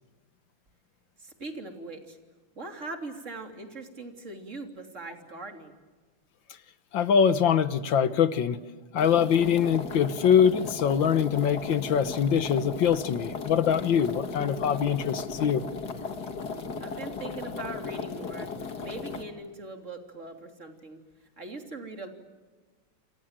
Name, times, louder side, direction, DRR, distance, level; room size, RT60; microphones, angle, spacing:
voice 1, 1.2-2.2 2.6-5.7 16.8-18.5 18.8-21.0 21.4-22.1, right 2 dB, 35° right, 5 dB, 3.6 m, -40 dB
voice 2, 6.9-8.6 8.9-15.6, left 8 dB, 65° left, 13 dB, 1.8 m, -23 dB
sound 1, 9.0-19.2, left 4 dB, 50° left, 2.3 m, -36 dB
28.0 x 27.5 x 7.5 m, 1.4 s
omnidirectional pair, 2.4 m